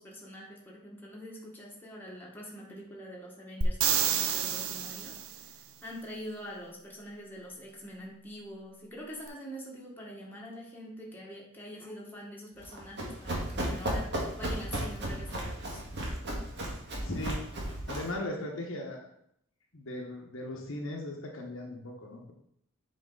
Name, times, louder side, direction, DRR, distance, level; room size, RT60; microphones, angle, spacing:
voice 1, 0.0-15.8, equal, 10° left, -3 dB, 1.5 m, -45 dB
sound 1, 3.6-5.4 9.3-9.4, right 8 dB, 80° right, 0.6 m, -29 dB
Run, 12.6-18.2, right 1 dB, 55° right, 1.7 m, -35 dB
voice 2, 17.0-17.4 17.9-19.1 19.7-22.3, left 1 dB, 65° left, 0 dB, 1.2 m, -38 dB
7.7 x 4.5 x 3.9 m, 0.72 s
head